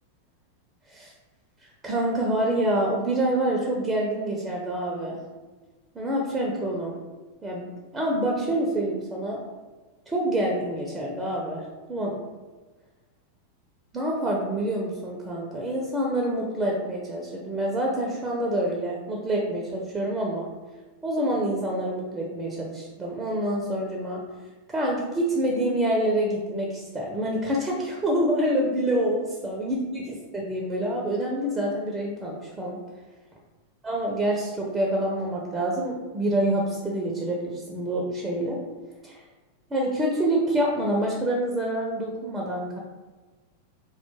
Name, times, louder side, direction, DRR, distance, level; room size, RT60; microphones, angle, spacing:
voice 1, 1.6-5.2 5.9-7.0 7.4-9.4 10.1-12.1 13.9-20.5 21.0-24.2 24.7-32.8 33.8-38.6 39.0-39.2 39.7-42.8, right 1 dB, 15° right, -2 dB, 0.4 m, -27 dB
2.2 x 2.1 x 3.0 m, 1.2 s
figure-of-eight pair, 90°, 0 cm